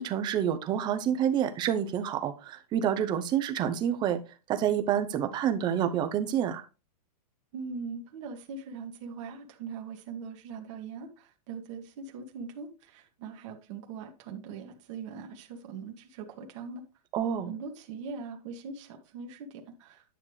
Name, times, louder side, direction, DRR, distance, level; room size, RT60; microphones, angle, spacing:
voice 1, 0.0-4.2 4.5-6.6 17.1-17.5, right 9 dB, 20° right, 0.8 m, -28 dB
voice 2, 7.5-16.8 17.5-19.5 19.8-20.0, right 5 dB, 50° right, 1.6 m, -41 dB
9.9 x 6.5 x 3.2 m
supercardioid pair, 160°, 21 cm